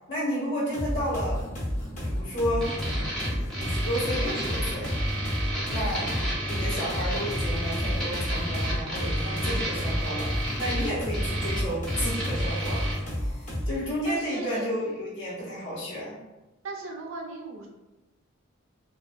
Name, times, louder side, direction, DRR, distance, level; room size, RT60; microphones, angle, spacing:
voice 1, 0.1-1.4 2.0-2.7 3.6-4.9 5.7-6.1 6.4-10.3 10.6-12.8 13.7-16.2, equal, 65° left, -6 dB, 1.0 m, -31 dB
sound 1, 0.7-13.9, equal, 40° left, 0.8 m, -31 dB
sound 2, 2.6-13.0, right 1 dB, 5° left, 0.7 m, -31 dB
voice 2, 14.0-14.7 16.6-17.7, right 2 dB, 75° right, 1 dB, 0.5 m, -37 dB
2.2 x 2.2 x 2.5 m, 1.0 s
head